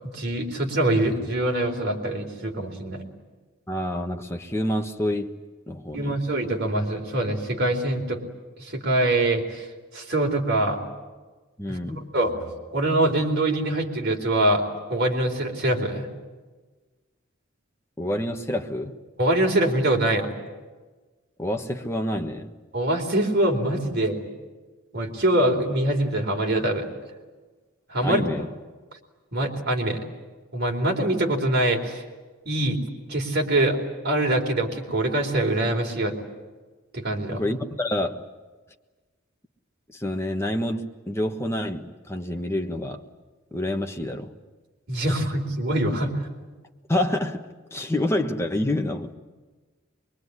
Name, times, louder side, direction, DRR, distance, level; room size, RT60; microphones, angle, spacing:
voice 1, 0.1-3.0 5.9-8.2 8.6-9.7 9.9-10.8 11.7-11.8 12.1-14.6 14.9-16.1 19.2-20.3 22.7-24.2 24.9-26.9 27.9-28.2 29.3-30.0 30.5-32.0 32.5-32.8 33.1-33.8 34.0-36.1 36.9-37.4 44.9-46.1, right 1 dB, 50° right, 4.1 m, -24 dB
voice 2, 3.7-5.3 5.7-6.2 11.6-12.1 18.0-19.0 21.4-22.5 28.0-28.5 37.3-38.2 39.9-43.0 43.5-44.3 46.9-47.4 47.7-49.1, left 1 dB, 15° left, 1.4 m, -27 dB
23.5 x 23.5 x 9.8 m
head